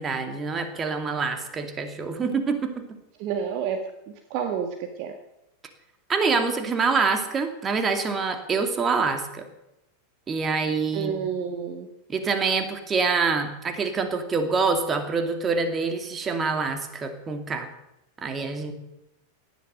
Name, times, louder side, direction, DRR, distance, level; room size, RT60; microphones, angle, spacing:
voice 1, 0.0-2.9 6.1-9.5 10.3-11.3 12.1-17.7 18.2-18.7, right 4 dB, 20° right, 7 dB, 2.4 m, -26 dB
voice 2, 3.2-3.8 4.3-5.1 10.9-11.9, right 7 dB, 45° right, 5 dB, 1.7 m, -29 dB
18.0 x 12.0 x 6.6 m, 0.88 s
figure-of-eight pair, 90°, 0 cm